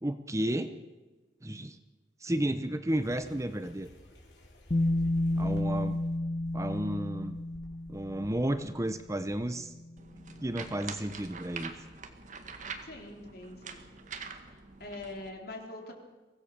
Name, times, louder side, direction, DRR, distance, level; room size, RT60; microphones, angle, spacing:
voice 1, 0.0-0.8 1.4-1.8 2.2-3.9 5.4-6.0 6.5-7.4 7.9-9.7 10.4-11.7, right 1 dB, 15° right, 10 dB, 0.9 m, -32 dB
sound 1, 2.9-9.4, equal, 80° left, 4.9 m, -51 dB
Bass guitar, 4.7-8.6 9.8-9.9, left 1 dB, 40° left, 1.3 m, -31 dB
voice 2, 5.3-5.6 12.9-13.8 14.5-15.9, left 2 dB, 60° left, 2 dB, 4.0 m, -44 dB
sound 2, 10.0-15.3, right 5 dB, 45° right, 1.9 m, -44 dB
24.0 x 17.0 x 6.9 m, 1.2 s
head